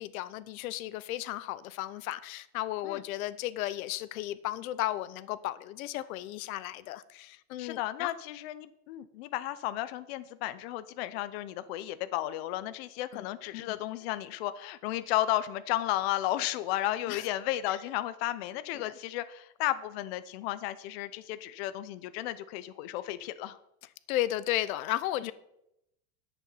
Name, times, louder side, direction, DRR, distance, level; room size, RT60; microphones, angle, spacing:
voice 1, 0.0-8.1 13.1-13.2 13.5-13.8 17.1-17.2 17.7-17.8 18.7-18.9 24.1-25.3, left 14 dB, 85° left, 0.9 m, -34 dB
voice 2, 7.6-23.6 25.2-25.3, left 14 dB, 50° left, 0.6 m, -33 dB
10.5 x 8.3 x 5.6 m
supercardioid pair, 180°, 41 cm